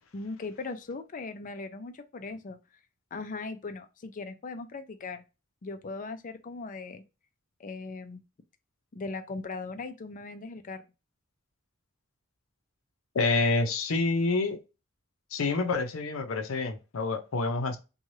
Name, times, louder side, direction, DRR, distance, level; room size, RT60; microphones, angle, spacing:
voice 1, 0.1-2.6 3.1-5.2 5.6-7.0 7.6-8.2 8.9-10.8, left 3 dB, 40° left, 0.5 m, -39 dB
voice 2, 13.1-14.6 15.3-17.8, left 3 dB, 85° left, 0.6 m, -27 dB
3.1 x 2.3 x 2.6 m
head